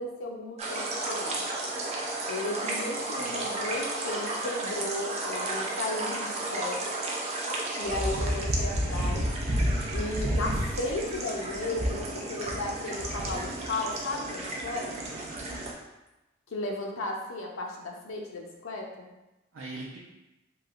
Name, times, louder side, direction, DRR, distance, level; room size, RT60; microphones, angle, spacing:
voice 1, 0.0-1.4 2.3-6.8 7.7-9.2 9.9-14.9 16.5-19.1, left 2 dB, 85° left, 0 dB, 0.6 m, -35 dB
sound 1, 0.6-15.7, right 1 dB, 35° right, 0.4 m, -31 dB
voice 2, 3.2-3.7 14.9-15.5 19.5-20.0, right 2 dB, 85° right, -4 dB, 0.5 m, -43 dB
3.1 x 2.7 x 2.4 m, 1.0 s
head